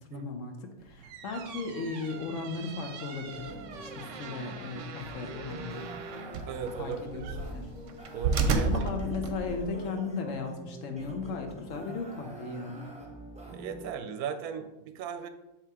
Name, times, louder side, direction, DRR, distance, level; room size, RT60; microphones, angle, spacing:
voice 1, 0.1-0.6 0.8-3.5 3.8-5.9 6.8-7.2 7.5-7.7 8.5-12.9, left 4 dB, 65° left, 5 dB, 1.1 m, -36 dB
sound 1, 0.9-9.7, right 4 dB, 65° right, 0.9 m, -35 dB
sound 2, 3.3-13.9, right 1 dB, 5° right, 0.8 m, -45 dB
voice 2, 6.5-7.4 8.1-8.7 13.5-15.3, right 7 dB, 90° right, 8 dB, 1.1 m, -37 dB
7.0 x 3.0 x 4.7 m, 0.98 s
omnidirectional pair, 1.6 m